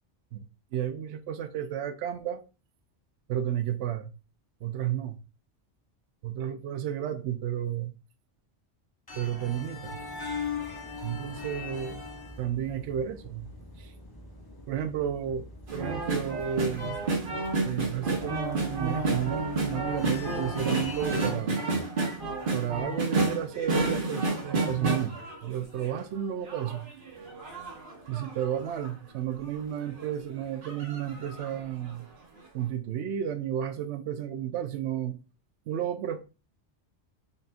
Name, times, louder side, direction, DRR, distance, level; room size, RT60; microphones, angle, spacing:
voice 1, 0.7-2.4 3.3-4.1 4.6-5.2 6.2-7.9 9.1-10.0 11.0-12.1 12.4-13.5 13.8-13.9 14.7-15.5 15.7-17.0 17.6-21.6 22.5-26.9 28.1-32.1 32.5-35.2 35.7-36.2, right 10 dB, 75° right, 0.9 m, -32 dB
sound 1, 9.1-21.3, left 4 dB, 25° left, 0.7 m, -40 dB
sound 2, 15.7-26.0 26.5-28.9 29.4-29.5 29.8-30.1 30.6-31.6 31.9-32.0, right 3 dB, 50° right, 1.2 m, -31 dB
4.1 x 3.9 x 2.3 m
omnidirectional pair, 1.2 m